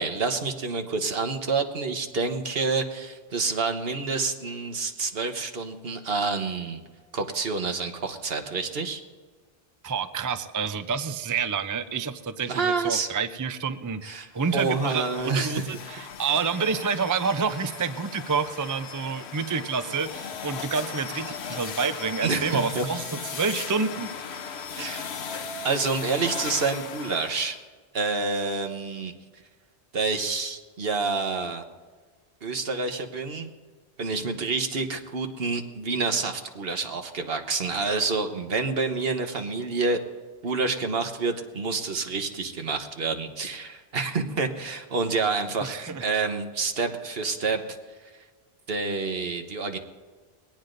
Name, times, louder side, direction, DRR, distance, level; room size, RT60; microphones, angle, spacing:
voice 1, 0.0-6.8 7.1-9.0 12.5-13.1 14.0-15.6 22.2-22.9 24.8-25.1 25.6-27.6 27.9-29.1 29.9-31.6 32.4-33.5 34.0-40.0 40.4-47.6 48.7-49.8, right 4 dB, 70° right, 6 dB, 1.3 m, -28 dB
voice 2, 9.8-14.0 14.3-15.6 15.9-23.0 23.3-24.1 45.6-46.0, right 5 dB, 25° right, 10 dB, 0.4 m, -28 dB
sound 1, 14.4-27.6, left 6 dB, 85° left, 1.1 m, -37 dB
21.0 x 18.0 x 2.6 m, 1.5 s
omnidirectional pair, 1.1 m